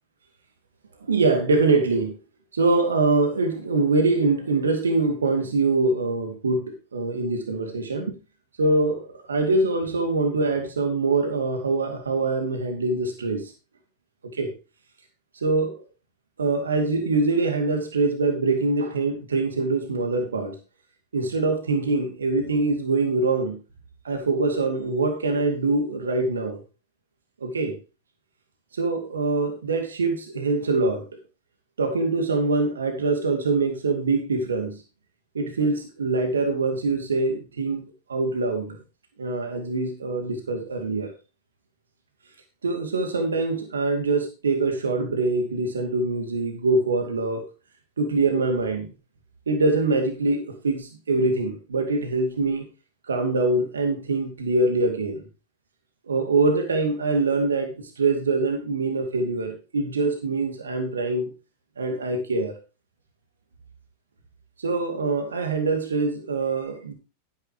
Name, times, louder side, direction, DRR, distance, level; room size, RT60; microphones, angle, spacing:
voice 1, 1.1-2.2 2.5-8.2 8.6-13.5 14.3-14.5 15.4-15.8 16.4-20.5 21.1-23.6 24.0-26.6 27.4-27.8 28.7-31.0 31.8-34.8 35.3-37.8 38.1-38.8 39.2-41.1 42.6-47.4 48.0-48.9 49.5-52.6 53.1-55.2 56.1-61.3 61.8-62.6 64.6-66.9, right 3 dB, 70° right, 5 dB, 2.3 m, -24 dB
13.0 x 9.8 x 3.0 m, 0.31 s
figure-of-eight pair, 90°, 0 cm